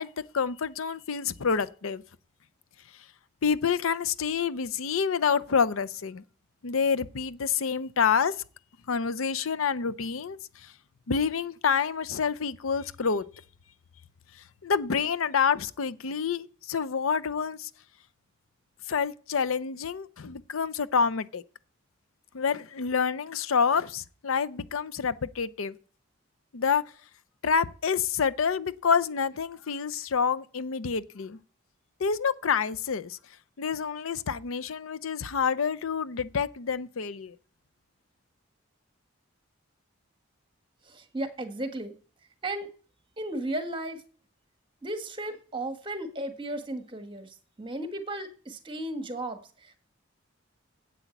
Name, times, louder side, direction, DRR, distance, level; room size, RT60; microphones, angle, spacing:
voice 1, 0.0-2.0 3.4-6.2 6.6-8.3 8.9-10.4 11.1-13.2 14.6-17.7 18.9-21.4 22.3-25.7 26.5-26.8 27.4-31.4 32.0-33.2 33.6-37.3, left 6 dB, 75° left, 0.6 m, -28 dB
voice 2, 40.8-41.9 42.4-42.7 43.2-44.0 44.8-49.8, right 1 dB, 25° right, 1.5 m, -35 dB
9.9 x 8.4 x 8.3 m
head